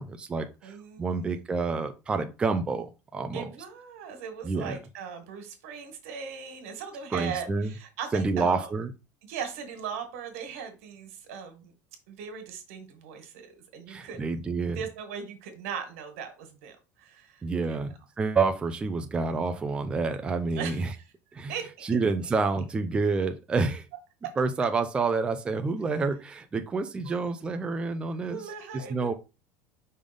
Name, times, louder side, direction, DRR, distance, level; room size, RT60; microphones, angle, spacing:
voice 1, 0.0-3.5 4.4-4.8 7.1-7.7 8.1-8.9 13.9-14.8 17.4-20.9 21.3-21.5 21.8-23.9 24.4-28.4 28.7-29.1, right 4 dB, 15° right, 7 dB, 0.5 m, -28 dB
voice 2, 0.6-1.4 3.3-8.7 9.3-11.7 12.1-17.8 20.5-21.0 21.5-22.0 27.1-27.2 28.3-29.1, right 7 dB, 90° right, 6 dB, 1.9 m, -39 dB
5.5 x 3.4 x 5.2 m, 0.29 s
cardioid pair, 155°, 7 cm